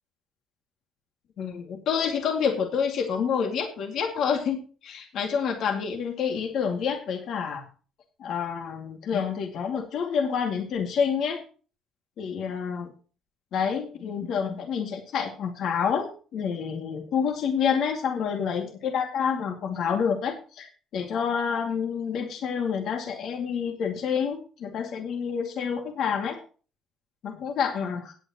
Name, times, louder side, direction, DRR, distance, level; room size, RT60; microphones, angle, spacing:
voice 1, 1.4-7.7 8.2-11.4 12.2-12.9 13.5-26.4 27.2-28.1, left 7 dB, 65° left, 4 dB, 2.2 m, -28 dB
16.0 x 9.2 x 3.0 m, 0.37 s
supercardioid pair, 80°, 0 cm